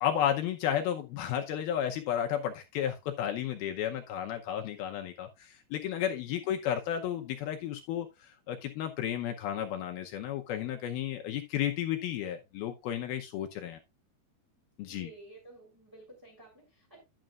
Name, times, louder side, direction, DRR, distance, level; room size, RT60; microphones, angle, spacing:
voice 1, 0.0-13.8 14.8-15.1, left 10 dB, 75° left, 4 dB, 2.4 m, -33 dB
voice 2, 14.9-17.0, right 2 dB, 5° right, -3 dB, 2.5 m, -53 dB
11.5 x 8.9 x 2.4 m, 0.23 s
omnidirectional pair, 5.0 m